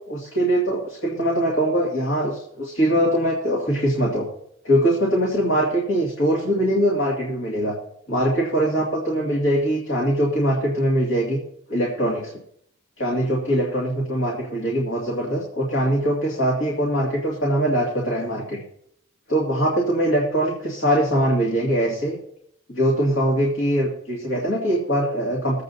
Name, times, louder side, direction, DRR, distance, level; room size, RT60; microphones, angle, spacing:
voice 1, 0.1-4.3 4.6-7.8 8.1-11.4 11.7-12.3 13.0-18.6 19.3-22.2 22.7-25.6, right 1 dB, 65° left, -4 dB, 2.2 m, -22 dB
22.5 x 8.3 x 2.7 m, 0.71 s
head